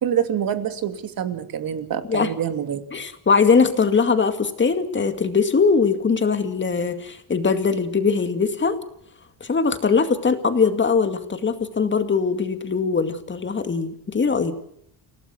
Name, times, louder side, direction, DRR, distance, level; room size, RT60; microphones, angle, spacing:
voice 1, 0.0-2.8, right 9 dB, 55° right, 8 dB, 2.7 m, -26 dB
voice 2, 2.9-8.8 9.4-14.5, left 5 dB, 25° left, 8 dB, 2.3 m, -21 dB
29.0 x 17.5 x 6.3 m, 0.72 s
cardioid pair, 135°, 41 cm